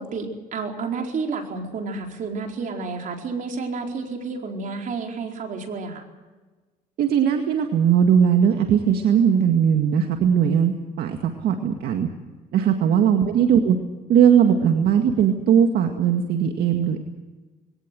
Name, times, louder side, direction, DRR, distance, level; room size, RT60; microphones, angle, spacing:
voice 1, 0.0-6.1 12.6-13.1, right 4 dB, 50° right, 2 dB, 4.6 m, -31 dB
voice 2, 7.0-12.1 12.5-13.8 14.1-17.0, right 8 dB, 70° right, 4 dB, 2.0 m, -19 dB
22.0 x 17.5 x 7.8 m, 1.2 s
cardioid pair, 110°, 17 cm